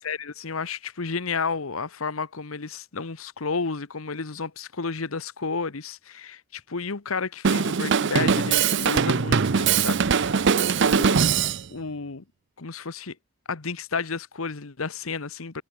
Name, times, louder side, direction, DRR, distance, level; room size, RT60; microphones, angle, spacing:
voice 1, 0.0-11.2 11.7-12.2 12.6-13.1 13.5-15.6, left 4 dB, 90° left, 1.2 m, -32 dB
Drum kit, 7.4-11.6, right 6 dB, 60° right, 0.6 m, -21 dB
head